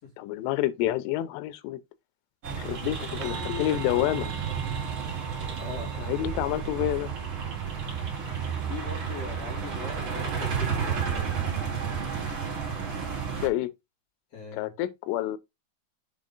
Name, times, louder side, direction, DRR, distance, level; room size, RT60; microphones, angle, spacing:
voice 1, 0.2-1.8 2.5-4.3 6.0-7.1 13.4-13.7 14.5-15.4, left 14 dB, 85° left, 3.2 m, -28 dB
sound 1, 2.4-13.5, right 6 dB, 55° right, 1.4 m, -32 dB
voice 2, 3.2-4.1 4.4-4.6 5.5-5.9 8.6-11.5 14.3-14.7, left 5 dB, 40° left, 2.8 m, -41 dB
sound 2, 3.2-11.9, right 8 dB, 80° right, 3.2 m, -47 dB
7.4 x 3.6 x 3.9 m
omnidirectional pair, 5.5 m